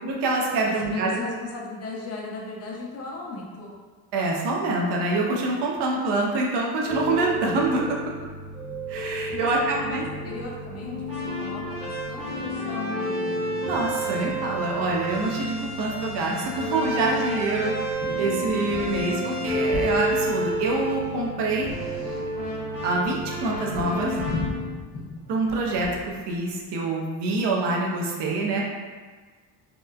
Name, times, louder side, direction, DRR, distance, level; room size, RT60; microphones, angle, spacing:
voice 1, 0.0-1.1 4.1-8.0 8.9-10.0 13.6-21.7 22.8-24.2 25.3-28.6, right 2 dB, 70° right, -1 dB, 0.6 m, -26 dB
voice 2, 0.6-3.8 9.3-13.5, left 2 dB, 35° left, -3 dB, 0.5 m, -36 dB
sound 1, 6.9-24.7, right 1 dB, 15° right, 0.7 m, -30 dB
sound 2, 18.0-18.2 18.5-19.0 19.3-20.1 20.4-22.5 22.8-26.2, left 2 dB, 80° left, 0.7 m, -35 dB
2.9 x 2.1 x 2.3 m, 1.4 s
cardioid pair, 120°, 43 cm